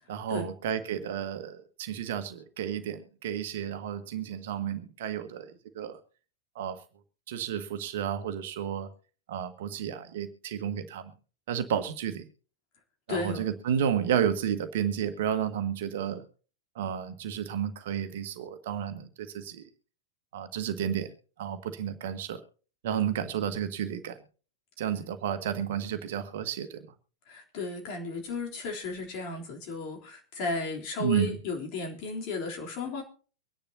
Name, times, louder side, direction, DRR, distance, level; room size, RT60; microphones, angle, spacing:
voice 1, 0.1-6.0 6.5-6.8 7.3-8.9 9.3-11.1 11.5-12.2 13.1-16.2 16.7-19.6 20.3-21.1 21.4-22.4 22.8-24.2 24.8-26.8 31.0-31.4, right 9 dB, 55° right, 9 dB, 1.5 m, -31 dB
voice 2, 13.1-13.5 27.3-33.0, left 4 dB, 45° left, 1 dB, 3.5 m, -34 dB
24.0 x 10.5 x 2.9 m, 0.39 s
figure-of-eight pair, 90°, 0 cm